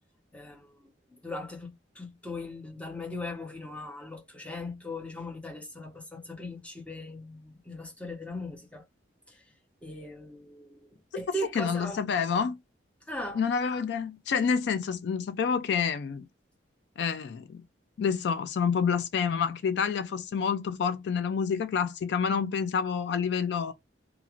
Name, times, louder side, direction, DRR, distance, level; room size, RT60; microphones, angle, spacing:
voice 1, 0.3-8.8 9.3-9.4 9.8-12.0 13.1-13.4, left 1 dB, 5° left, 0.7 m, -39 dB
voice 2, 11.6-12.6 13.4-16.3 17.0-17.6 18.0-23.7, left 6 dB, 65° left, 0.3 m, -28 dB
2.4 x 2.4 x 2.9 m
head